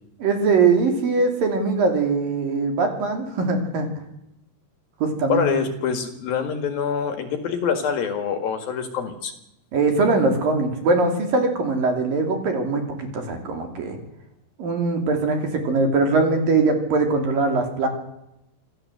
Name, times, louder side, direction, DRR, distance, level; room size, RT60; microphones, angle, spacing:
voice 1, 0.2-3.9 5.0-5.6 9.7-14.0 14.6-17.9, right 3 dB, 55° right, 5 dB, 4.5 m, -21 dB
voice 2, 5.3-9.3, left 7 dB, 60° left, 7 dB, 3.4 m, -25 dB
27.5 x 14.5 x 8.0 m, 0.84 s
omnidirectional pair, 5.2 m